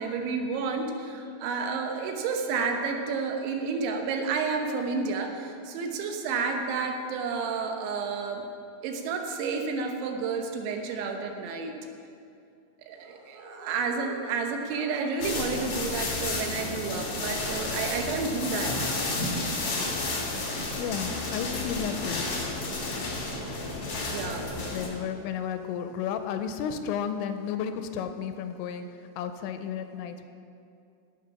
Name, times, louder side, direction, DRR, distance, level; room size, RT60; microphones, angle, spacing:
voice 1, 0.0-8.4 8.8-11.7 12.9-19.1 24.1-24.6, right 4 dB, 80° right, 4 dB, 3.3 m, -31 dB
sound 1, 12.9-15.4 15.6-16.2 17.3-17.9 18.4-19.0, right 1 dB, 50° right, 3.4 m, -47 dB
sound 2, 15.2-24.9, left 2 dB, 65° left, 1.2 m, -31 dB
voice 2, 20.7-22.3 24.7-28.8 29.2-30.2, left 8 dB, 85° left, 8 dB, 2.9 m, -32 dB
17.5 x 7.0 x 5.7 m, 2.5 s
omnidirectional pair, 5.4 m